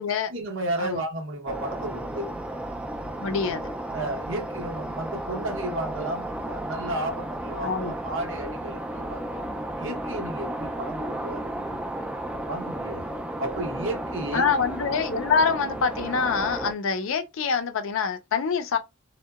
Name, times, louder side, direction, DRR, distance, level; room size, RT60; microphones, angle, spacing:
voice 1, 0.3-2.3 3.9-9.5 9.8-11.8 12.5-13.1 13.4-14.5, right 1 dB, 65° right, 0.8 m, -33 dB
sound 1, 1.5-16.7, right 1 dB, 5° right, 0.3 m, -33 dB
voice 2, 3.2-3.7 7.6-7.9 14.3-18.8, left 5 dB, 70° left, 0.4 m, -25 dB
2.7 x 2.1 x 2.3 m
head